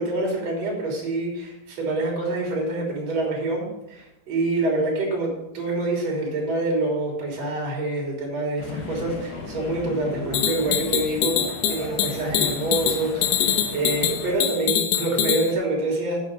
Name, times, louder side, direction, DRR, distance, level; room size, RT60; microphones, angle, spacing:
voice 1, 0.0-11.4 11.7-16.2, right 2 dB, 40° right, -1 dB, 4.2 m, -26 dB
sound 1, 8.6-14.4, left 3 dB, 60° left, 3.2 m, -36 dB
sound 2, 10.3-15.5, left 9 dB, 75° left, 2.1 m, -24 dB
9.4 x 6.6 x 6.8 m, 0.92 s
omnidirectional pair, 4.6 m